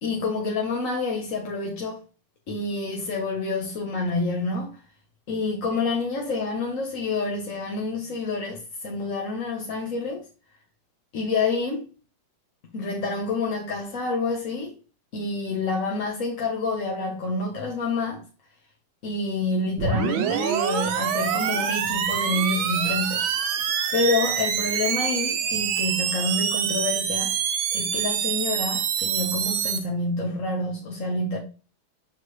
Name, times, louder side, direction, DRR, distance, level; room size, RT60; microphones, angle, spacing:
voice 1, 0.0-2.0 2.5-4.7 5.3-10.2 11.1-11.9 12.6-14.8 15.1-18.2 19.0-23.3 23.9-27.3 27.7-31.4, left 3 dB, 50° left, 1.2 m, -28 dB
sound 1, 19.8-29.8, right 8 dB, 75° right, 1.5 m, -26 dB
6.6 x 4.7 x 3.1 m
omnidirectional pair, 2.3 m